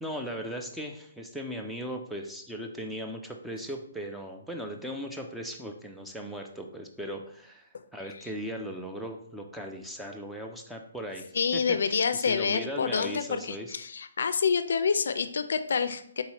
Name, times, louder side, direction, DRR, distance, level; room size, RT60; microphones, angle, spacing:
voice 1, 0.0-11.3 11.5-13.7, equal, ahead, 2 dB, 0.4 m, -38 dB
voice 2, 11.3-16.2, left 6 dB, 70° left, 11 dB, 0.4 m, -27 dB
4.1 x 3.7 x 2.9 m, 0.65 s
hypercardioid pair, 155°, 0 cm